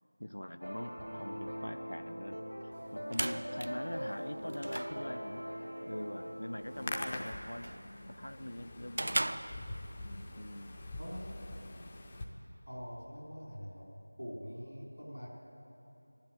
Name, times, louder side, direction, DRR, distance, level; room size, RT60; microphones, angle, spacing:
voice 1, 0.2-2.4 2.9-5.4 5.9-7.7 8.2-9.6 10.4-10.8, left 1 dB, 65° left, 12 dB, 0.5 m, -43 dB
sound 1, 0.6-7.0, equal, 90° right, 2.1 m, -42 dB
sound 2, 2.7-10.2, right 1 dB, 45° right, 0.4 m, -41 dB
Hands, 6.6-12.2, left 2 dB, 15° left, 0.5 m, -44 dB
voice 2, 11.0-11.5 12.7-13.9 14.2-15.3, equal, 80° left, -3 dB, 4.0 m, -44 dB
11.5 x 10.5 x 8.8 m, 2.9 s
figure-of-eight pair, 175°, 0 cm